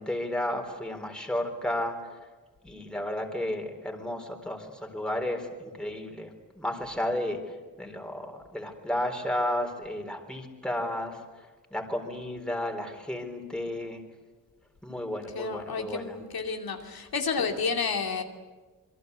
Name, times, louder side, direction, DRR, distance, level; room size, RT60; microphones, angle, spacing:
voice 1, 0.0-2.1 2.6-11.2 11.7-14.0 14.8-16.2, left 1 dB, ahead, 3 dB, 4.1 m, -33 dB
voice 2, 15.3-18.2, left 5 dB, 85° left, 3 dB, 2.7 m, -30 dB
27.0 x 23.0 x 8.3 m, 1.3 s
wide cardioid pair, 125°, 35 cm